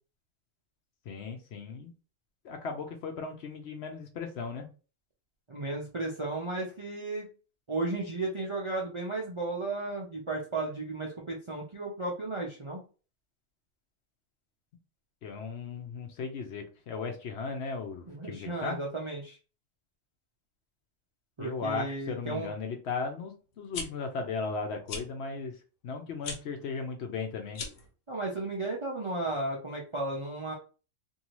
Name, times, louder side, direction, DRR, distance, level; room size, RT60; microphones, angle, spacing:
voice 1, 1.1-1.9 2.4-4.7 15.2-18.8 21.4-25.5 25.8-27.6, left 4 dB, 65° left, 4 dB, 0.8 m, -36 dB
voice 2, 5.5-7.3 7.7-12.8 18.1-19.4 21.4-22.5 28.1-30.5, right 2 dB, 40° right, -2 dB, 0.4 m, -34 dB
sound 1, 23.5-23.9 24.9-25.1 26.2-26.4 27.5-27.9, left 4 dB, 85° left, 1.2 m, -37 dB
2.7 x 2.7 x 2.9 m, 0.35 s
omnidirectional pair, 1.3 m